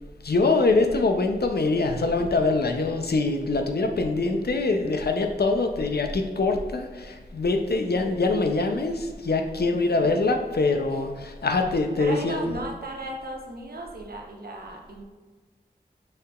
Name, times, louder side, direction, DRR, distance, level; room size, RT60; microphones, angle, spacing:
voice 1, 0.2-12.5, left 3 dB, 70° left, 5 dB, 0.5 m, -24 dB
voice 2, 7.8-8.2 9.7-10.1 12.0-15.0, right 2 dB, 65° right, 2 dB, 0.7 m, -37 dB
6.3 x 2.9 x 2.3 m, 1.4 s
wide cardioid pair, 50°, 17 cm